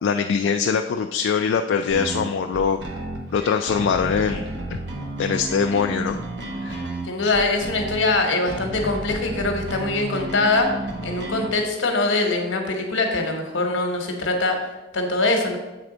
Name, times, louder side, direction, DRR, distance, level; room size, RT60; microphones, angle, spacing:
voice 1, 0.0-2.8 3.3-4.8 5.2-6.2 6.6-6.8 7.2-7.3, left 6 dB, 75° left, 5 dB, 0.3 m, -23 dB
sound 1, 1.9-11.5, right 1 dB, 60° right, 1.1 m, -32 dB
voice 2, 7.0-10.7 11.0-14.6 14.9-15.6, left 2 dB, 90° left, 4 dB, 1.1 m, -23 dB
7.8 x 3.4 x 4.9 m, 1.1 s
head